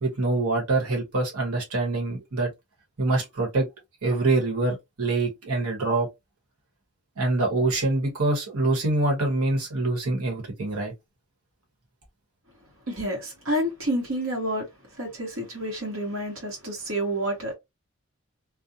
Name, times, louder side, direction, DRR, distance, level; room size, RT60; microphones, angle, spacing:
voice 1, 0.0-2.5 3.0-3.7 4.0-6.1 7.2-10.9, right 2 dB, 85° right, 1.1 m, -25 dB
voice 2, 12.9-14.7 15.0-17.6, right 1 dB, 65° right, 1.0 m, -29 dB
2.5 x 2.1 x 2.7 m
head